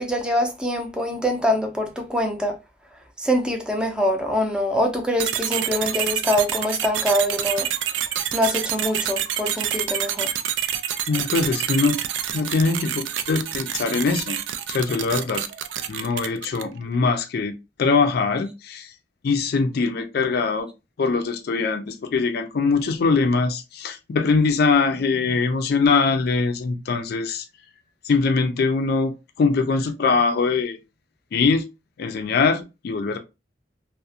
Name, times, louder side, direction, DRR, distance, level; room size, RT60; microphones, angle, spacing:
voice 1, 0.0-2.5 3.2-7.7 8.3-10.3, equal, 5° right, 0.5 m, -24 dB
sound 1, 5.2-16.8, right 10 dB, 85° right, 0.3 m, -27 dB
voice 2, 11.1-12.0 12.3-14.4 14.7-15.4 15.9-18.9 19.2-20.7 21.0-27.5 28.0-30.8 31.3-31.7 32.0-33.2, left 4 dB, 60° left, 0.4 m, -22 dB
2.4 x 2.1 x 2.6 m
head